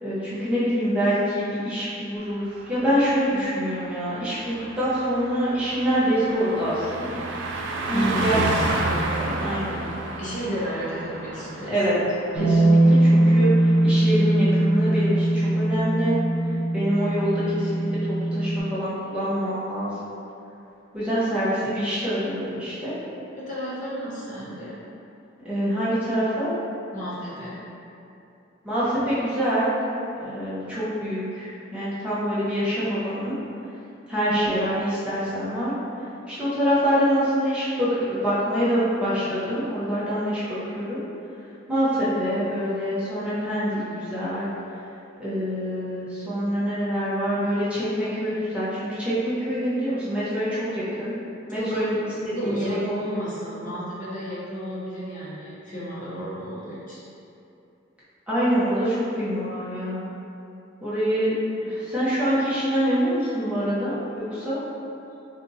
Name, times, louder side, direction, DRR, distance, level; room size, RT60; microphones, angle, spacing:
voice 1, 0.0-7.2 7.9-8.4 8.7-9.8 11.6-12.0 12.3-16.2 16.7-17.9 18.3-19.9 20.9-23.0 25.4-26.5 28.6-29.7 30.2-33.4 34.1-35.7 36.3-41.0 41.7-44.5 45.2-51.1 51.5-52.8 58.3-60.0 60.8-61.3 61.6-64.6, equal, 5° right, -12 dB, 0.7 m, -25 dB
Car passing by, 2.3-14.2 14.5-14.7, right 2 dB, 60° right, 0.3 m, -32 dB
voice 2, 7.9-8.4 10.2-11.8 23.3-24.7 26.9-27.6 51.5-51.8 52.3-57.0, equal, 40° left, -8 dB, 0.7 m, -32 dB
Bass guitar, 12.4-18.6, right 1 dB, 60° left, 1.1 m, -20 dB
4.0 x 2.4 x 2.7 m, 2.7 s
head